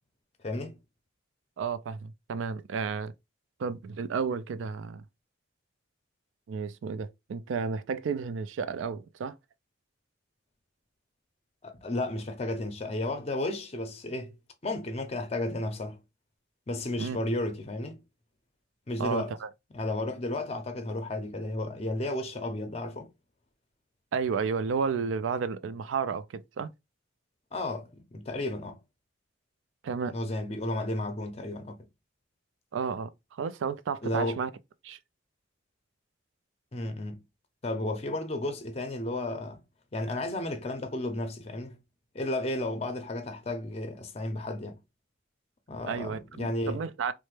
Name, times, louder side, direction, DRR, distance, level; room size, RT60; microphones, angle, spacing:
voice 1, 0.4-0.8 11.6-14.3 14.6-16.0 16.7-18.0 18.9-19.3 19.7-23.1 27.5-28.8 30.1-31.8 34.0-34.4 36.7-37.2 37.6-39.6 39.9-41.8 42.1-44.8 45.7-46.8, left 1 dB, 35° left, 0.5 m, -33 dB
voice 2, 1.6-3.1 3.6-5.0 6.5-9.4 17.0-17.2 19.0-19.5 24.1-26.7 29.8-30.1 32.7-33.1 33.4-34.5 34.8-35.0 45.9-47.1, right 5 dB, 80° right, 0.3 m, -32 dB
3.2 x 2.1 x 3.1 m
head